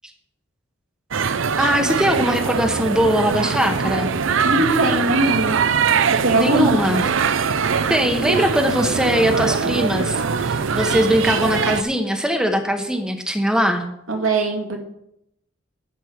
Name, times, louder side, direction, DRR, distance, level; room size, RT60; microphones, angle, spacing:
sound 1, 1.1-11.8, right 6 dB, 70° right, 0.5 m, -22 dB
voice 1, 1.6-4.1 6.4-7.0 7.9-13.9, equal, 5° right, 5 dB, 0.9 m, -20 dB
voice 2, 4.4-5.6 6.2-6.8 14.1-14.8, right 2 dB, 85° right, 2 dB, 2.2 m, -20 dB
11.0 x 5.3 x 8.1 m, 0.79 s
head